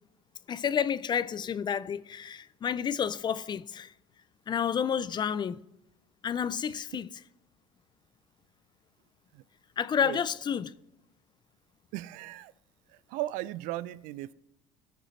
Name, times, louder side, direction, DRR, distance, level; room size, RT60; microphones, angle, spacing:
voice 1, 0.5-3.9 4.5-5.6 6.2-7.1 9.8-10.7, left 8 dB, 30° left, 0.4 m, -30 dB
voice 2, 11.9-12.5 12.9-14.3, right 15 dB, 70° right, 0.4 m, -37 dB
16.0 x 6.6 x 3.2 m
supercardioid pair, 85°, 14 cm